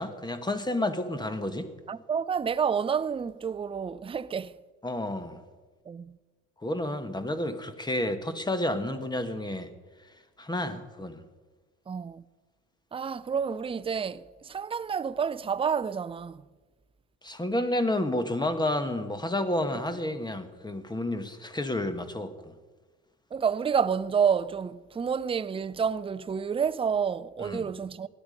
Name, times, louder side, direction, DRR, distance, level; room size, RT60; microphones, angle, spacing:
voice 1, 0.0-1.7 4.8-5.4 6.6-9.7 10.4-11.2 17.2-22.5 27.4-27.7, left 1 dB, 15° left, 1.5 m, -30 dB
voice 2, 1.9-4.6 5.9-6.2 11.9-12.2 12.9-16.4 19.7-19.8 23.3-28.1, right 7 dB, 15° right, 0.5 m, -29 dB
17.5 x 11.0 x 5.3 m
supercardioid pair, 80°, 33 cm